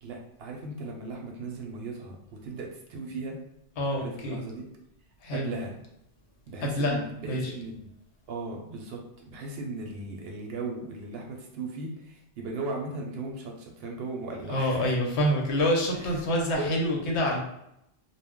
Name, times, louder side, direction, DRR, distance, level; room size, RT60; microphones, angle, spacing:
voice 1, 0.0-3.4 4.0-4.7 5.3-5.7 6.5-7.9 8.3-14.9 16.6-16.7, right 3 dB, 70° right, 0 dB, 0.8 m, -37 dB
voice 2, 3.8-4.4 5.2-5.5 6.6-7.5 14.5-17.4, equal, 75° left, 0 dB, 1.0 m, -27 dB
2.2 x 2.1 x 3.5 m, 0.80 s
omnidirectional pair, 1.1 m